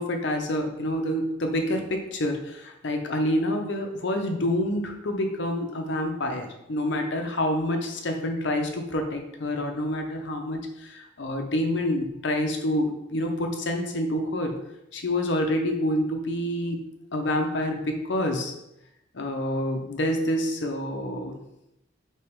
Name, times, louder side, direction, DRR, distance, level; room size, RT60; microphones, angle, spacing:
voice 1, 0.0-14.6 14.9-16.8 17.1-18.5 19.1-21.4, left 1 dB, 60° left, 4 dB, 0.6 m, -27 dB
3.4 x 3.0 x 4.4 m, 0.86 s
head